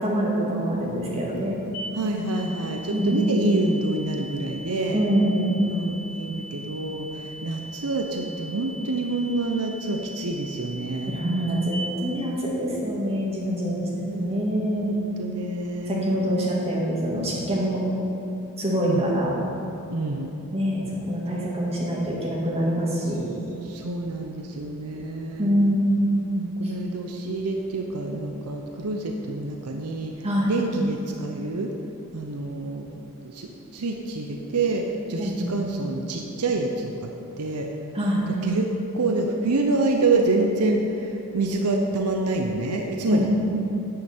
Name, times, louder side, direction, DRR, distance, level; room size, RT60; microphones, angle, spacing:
voice 1, 0.0-1.6 2.9-3.3 4.9-5.6 11.1-13.9 14.2-14.9 15.9-17.8 18.6-19.3 20.5-23.3 25.4-26.1 26.6-26.7 30.2-30.5 35.2-35.5 37.9-38.3 43.1-43.3, equal, 30° right, -4 dB, 2.1 m, -25 dB
sound 1, 1.7-11.7, right 1 dB, 90° left, 2.4 m, -41 dB
voice 2, 1.9-5.0 5.6-11.2 14.0-14.4 14.9-16.1 18.8-19.1 19.9-20.3 23.6-25.5 26.4-30.1 30.5-31.7 32.1-33.0 33.2-37.1 37.4-37.7 38.4-43.3, right 2 dB, 90° right, 2 dB, 0.7 m, -27 dB
9.5 x 9.5 x 4.4 m, 2.9 s
head